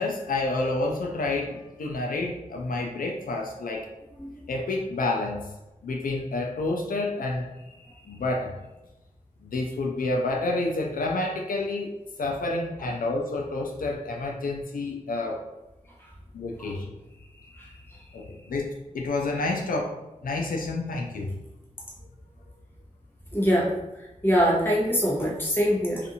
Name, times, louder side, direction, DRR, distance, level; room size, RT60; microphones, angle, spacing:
voice 1, 0.0-3.9 4.5-5.5 5.8-7.5 8.1-8.5 9.4-11.9 12.2-15.4 16.3-16.9 18.1-19.9 20.2-21.4, left 2 dB, 80° left, 1 dB, 0.4 m, -29 dB
voice 2, 23.3-23.7 24.2-26.0, equal, 15° left, -5 dB, 0.9 m, -23 dB
2.5 x 2.4 x 2.7 m, 1.0 s
wide cardioid pair, 55°, 14 cm